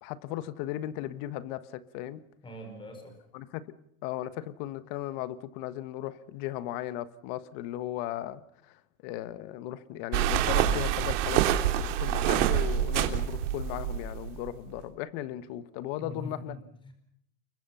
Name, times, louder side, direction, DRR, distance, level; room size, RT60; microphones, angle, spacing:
voice 1, 0.0-2.2 3.3-3.7 4.0-8.4 9.0-16.6, left 13 dB, 40° left, 1.5 m, -36 dB
voice 2, 2.4-3.2 16.0-16.9, left 1 dB, 10° left, 4.6 m, -43 dB
sound 1, 10.1-14.5, right 10 dB, 55° right, 3.3 m, -26 dB
29.5 x 23.5 x 5.7 m
supercardioid pair, 155°, 44 cm